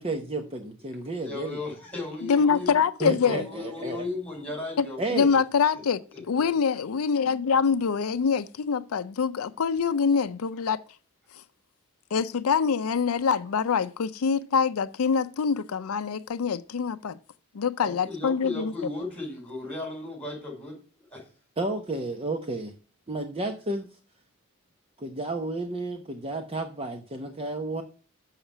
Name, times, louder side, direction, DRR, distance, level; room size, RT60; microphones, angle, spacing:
voice 1, 0.0-1.6 3.0-4.1 5.0-5.3 21.6-22.7 23.1-23.9 25.0-27.8, right 2 dB, 25° right, 0.8 m, -32 dB
voice 2, 1.1-2.7 3.2-5.0 6.1-6.2 6.5-6.6 17.8-20.8 21.1-21.2, left 2 dB, 5° left, 5.1 m, -36 dB
voice 3, 2.2-3.5 4.8-4.9 5.1-10.8 12.1-17.2 17.5-18.7, left 6 dB, 85° left, 0.5 m, -25 dB
7.2 x 5.7 x 7.1 m
head